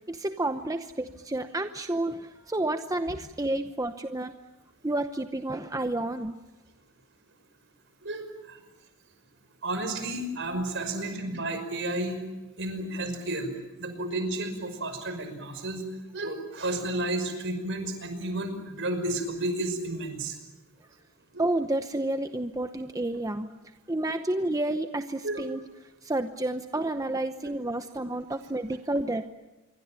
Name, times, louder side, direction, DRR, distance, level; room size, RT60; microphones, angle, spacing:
voice 1, 0.1-4.3 4.8-6.3 21.4-23.5 23.9-25.6 26.0-29.2, right 1 dB, 15° right, 8 dB, 0.8 m, -30 dB
voice 2, 8.0-8.6 9.6-12.2 12.6-13.5 13.8-15.8 16.1-20.4 21.3-21.4 25.2-25.4, right 1 dB, 60° right, 8 dB, 5.6 m, -32 dB
27.0 x 23.5 x 8.9 m, 1.1 s
head